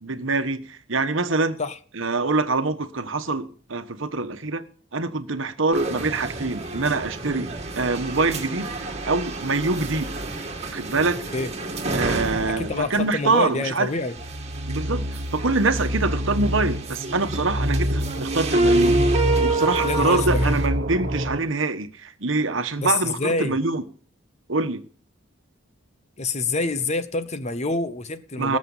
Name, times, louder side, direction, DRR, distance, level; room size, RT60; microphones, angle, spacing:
voice 1, 0.0-1.6 1.9-4.6 4.9-10.1 10.7-11.2 11.9-13.9 14.7-15.1 15.3-19.0 19.4-23.8 24.5-24.8 28.4-28.6, right 3 dB, 65° right, 1.3 m, -25 dB
sound 1, 5.7-20.6, right 2 dB, 30° right, 2.4 m, -28 dB
voice 2, 12.5-14.2 19.8-20.5 22.8-23.6 26.2-28.6, left 3 dB, 35° left, 0.9 m, -27 dB
sound 2, 14.2-21.4, equal, 45° right, 1.2 m, -26 dB
19.5 x 7.5 x 5.6 m
head